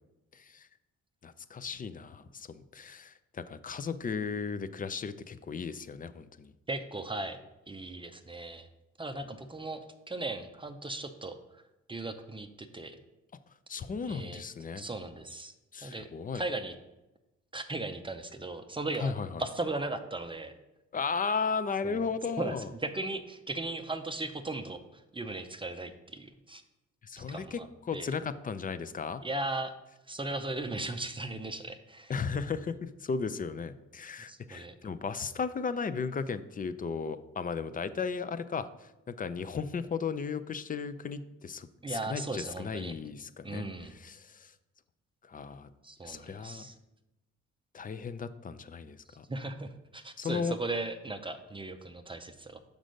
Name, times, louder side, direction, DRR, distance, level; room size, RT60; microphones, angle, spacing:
voice 1, 0.3-0.7 1.2-6.5 13.7-14.9 15.7-16.4 19.0-19.4 20.9-22.7 27.0-29.2 32.1-43.7 43.9-44.5 45.3-45.7 46.0-46.7 47.7-49.2 50.2-50.6, left 5 dB, 30° left, 13 dB, 0.4 m, -35 dB
voice 2, 6.7-7.4 7.7-8.7 9.0-11.4 11.9-13.0 14.1-14.4 14.8-15.5 15.8-16.1 16.3-16.8 17.5-19.1 19.4-20.5 21.8-22.1 22.4-26.6 27.2-27.7 27.9-28.2 29.2-29.7 30.1-32.1 34.3-34.7 41.8-42.9 43.4-43.9 45.8-46.7 49.3-52.6, right 2 dB, 15° right, 7 dB, 0.5 m, -37 dB
6.1 x 5.2 x 5.1 m, 0.97 s
cardioid pair, 90°, 30 cm